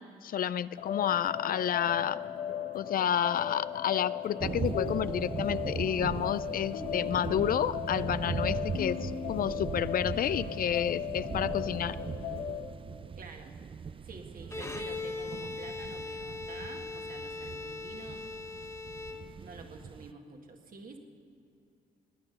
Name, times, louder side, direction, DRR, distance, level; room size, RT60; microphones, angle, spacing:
voice 1, 0.0-2.2 2.7-12.0, left 9 dB, 55° left, 16 dB, 0.4 m, -30 dB
sound 1, 0.8-12.7, left 9 dB, 90° left, 1.2 m, -37 dB
sound 2, 4.4-20.1, right 6 dB, 30° right, 0.4 m, -39 dB
voice 2, 13.2-13.5 14.0-18.2 19.1-21.0, right 3 dB, 55° right, 3 dB, 1.9 m, -49 dB
Bowed string instrument, 14.4-19.7, left 3 dB, 15° left, 1.2 m, -40 dB
19.0 x 9.6 x 6.7 m, 2.5 s
supercardioid pair, 60°, 18 cm